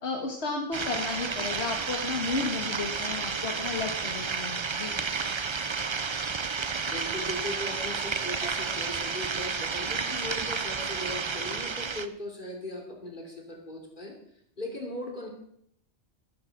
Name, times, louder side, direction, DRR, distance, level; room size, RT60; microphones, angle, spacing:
voice 1, 0.0-5.0, left 4 dB, 65° left, 1 dB, 1.8 m, -33 dB
sound 1, 0.7-12.1, right 5 dB, 35° right, 0.5 m, -31 dB
voice 2, 6.8-14.1 14.6-15.3, left 1 dB, 45° left, 0 dB, 3.4 m, -38 dB
13.0 x 10.5 x 6.0 m, 0.70 s
omnidirectional pair, 1.2 m